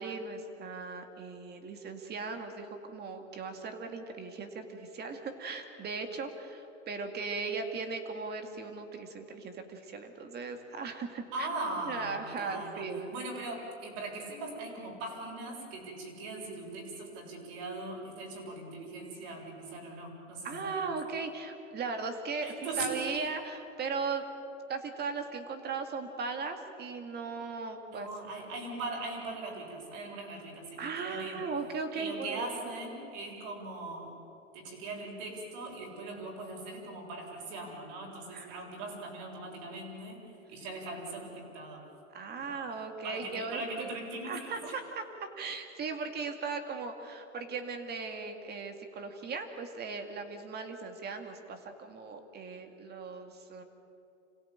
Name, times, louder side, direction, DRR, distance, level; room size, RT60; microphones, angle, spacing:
voice 1, 0.0-11.5 11.8-13.2 20.4-22.5 22.8-24.2 24.7-28.5 30.8-32.7 38.3-38.7 42.1-43.9 44.2-53.6, right 4 dB, 25° right, 6 dB, 2.4 m, -38 dB
voice 2, 11.3-20.9 22.4-23.0 27.9-31.4 31.9-34.1 34.5-40.2 40.5-41.8 42.4-42.7 43.0-44.7, right 2 dB, 55° right, 0 dB, 7.4 m, -40 dB
27.0 x 17.0 x 9.0 m, 2.8 s
hypercardioid pair, 125°, 39 cm